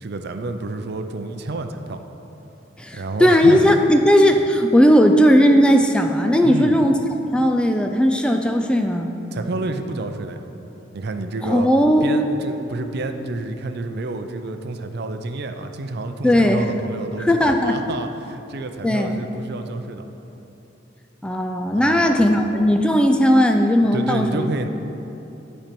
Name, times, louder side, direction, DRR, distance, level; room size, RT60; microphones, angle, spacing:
voice 1, 0.0-2.1 2.9-3.6 6.4-6.8 9.3-10.4 10.9-11.7 12.0-20.1 21.7-22.2 23.9-24.7, right 2 dB, 55° right, 7 dB, 0.5 m, -29 dB
voice 2, 2.8-7.0 7.3-9.1 11.4-12.1 16.2-16.7 17.2-17.8 18.8-19.2 21.2-24.5, equal, 5° left, 4 dB, 0.3 m, -17 dB
11.5 x 4.4 x 5.2 m, 3.0 s
head